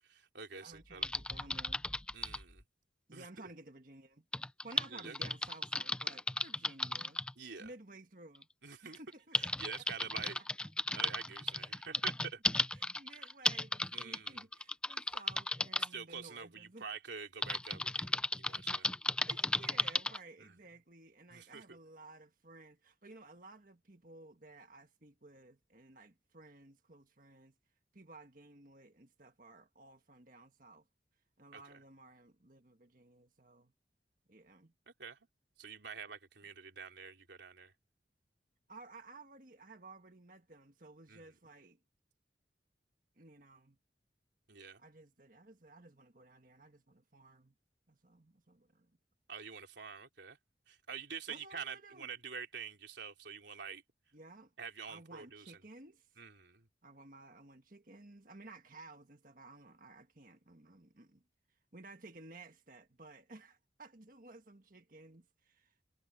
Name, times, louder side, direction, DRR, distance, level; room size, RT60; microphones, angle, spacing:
voice 1, 0.0-1.1 2.1-2.6 3.1-3.3 4.9-5.1 7.3-7.7 8.6-9.0 9.3-10.4 10.9-12.4 13.2-13.3 13.9-14.5 15.7-18.9 20.4-20.6 21.3-21.8 31.5-31.8 35.0-35.2 35.6-37.7 41.1-41.3 44.5-44.8 49.3-50.4 50.7-53.8 54.6-55.4 56.2-56.7, right 6 dB, 80° right, 3.3 m, -47 dB
voice 2, 0.6-1.8 3.1-4.3 4.6-7.2 7.6-8.5 8.8-9.7 10.9-11.0 11.6-12.0 12.7-16.8 19.3-27.5 27.9-30.8 31.4-33.7 34.3-34.7 38.7-41.8 43.2-43.8 44.8-47.5 47.9-48.9 51.3-52.1 54.1-54.5 54.9-56.1 56.8-61.2 61.7-65.8, right 2 dB, 50° right, 1.8 m, -55 dB
Typing, 1.0-2.4 4.3-7.3 8.4-8.5 8.9-15.9 17.4-20.2, left 2 dB, 5° left, 0.3 m, -35 dB
head